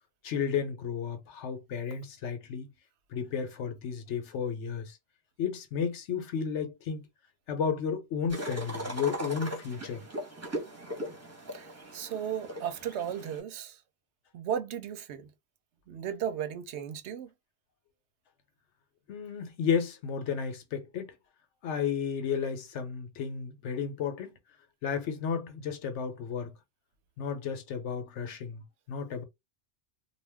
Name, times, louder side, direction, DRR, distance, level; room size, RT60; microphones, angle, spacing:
voice 1, 0.2-2.7 3.1-5.0 5.4-7.0 7.5-10.0 19.1-21.1 21.6-24.4 24.8-26.5 27.2-28.6 28.9-29.2, left 7 dB, 80° left, 1.0 m, -33 dB
sound 1, 8.3-13.4, right 1 dB, 15° right, 0.9 m, -39 dB
voice 2, 11.5-13.8 14.3-15.3 15.9-17.3, right 9 dB, 75° right, 0.9 m, -35 dB
2.4 x 2.2 x 3.3 m
omnidirectional pair, 1.2 m